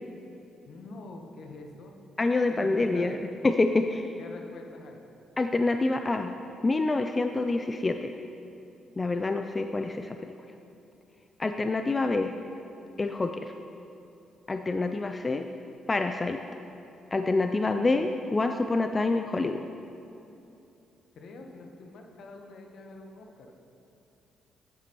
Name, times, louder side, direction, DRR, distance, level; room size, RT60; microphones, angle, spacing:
voice 1, 0.7-2.0 2.5-3.2 4.2-5.0 21.1-23.5, left 3 dB, 65° left, 3 dB, 1.0 m, -45 dB
voice 2, 2.2-3.2 3.4-4.1 5.4-6.3 6.6-8.1 9.0-10.2 11.4-12.3 13.0-13.5 14.5-15.5 15.9-16.4 17.1-19.7, left 3 dB, 25° left, 6 dB, 0.3 m, -26 dB
10.0 x 8.4 x 3.0 m, 2.8 s
supercardioid pair, 75°, 0 cm